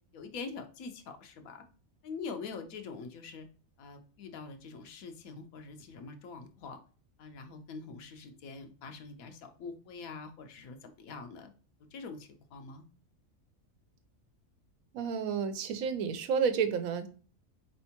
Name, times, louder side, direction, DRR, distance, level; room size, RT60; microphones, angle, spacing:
voice 1, 0.1-1.6 2.0-3.5 3.8-6.8 7.2-11.5 11.9-12.9, left 4 dB, 85° left, 6 dB, 1.2 m, -44 dB
voice 2, 14.9-17.1, right 6 dB, 80° right, 9 dB, 1.1 m, -30 dB
4.3 x 3.4 x 2.8 m, 0.39 s
omnidirectional pair, 1.4 m